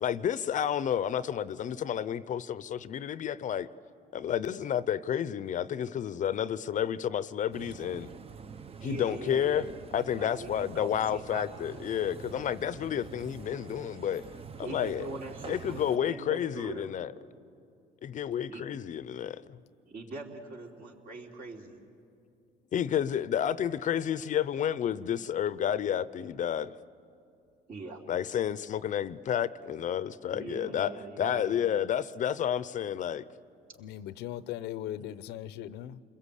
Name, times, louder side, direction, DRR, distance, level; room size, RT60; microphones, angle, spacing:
voice 1, 0.0-3.7 4.1-8.1 8.8-9.7 9.9-14.2 14.6-15.1 15.5-17.1 18.0-19.6 22.7-26.7 28.1-30.9 31.2-33.2, left 9 dB, 50° left, 0.6 m, -30 dB
sound 1, 7.5-16.0, right 6 dB, 35° right, 0.8 m, -46 dB
voice 2, 8.8-9.7 10.2-11.4 14.6-16.8 18.5-18.6 19.9-21.8 27.7-28.0 30.3-31.6, right 3 dB, 60° right, 3.4 m, -42 dB
voice 3, 33.8-36.0, left 12 dB, 85° left, 0.7 m, -39 dB
29.0 x 21.5 x 8.3 m
cardioid pair, 110°, 17 cm